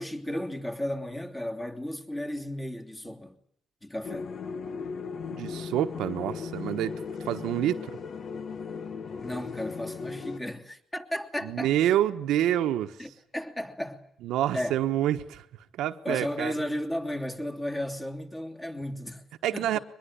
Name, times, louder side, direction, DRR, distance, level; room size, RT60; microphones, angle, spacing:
voice 1, 0.0-3.4 3.8-4.4 9.2-11.7 13.0-14.0 14.5-14.8 16.0-19.2 19.5-19.8, left 1 dB, 15° left, 3.0 m, -34 dB
sound 1, 4.0-10.4, left 5 dB, 55° left, 1.2 m, -37 dB
voice 2, 5.3-8.0 11.4-12.9 14.2-15.4 15.8-16.5 19.4-19.8, right 12 dB, 85° right, 1.2 m, -27 dB
23.0 x 21.0 x 10.0 m
cardioid pair, 90°, 0 cm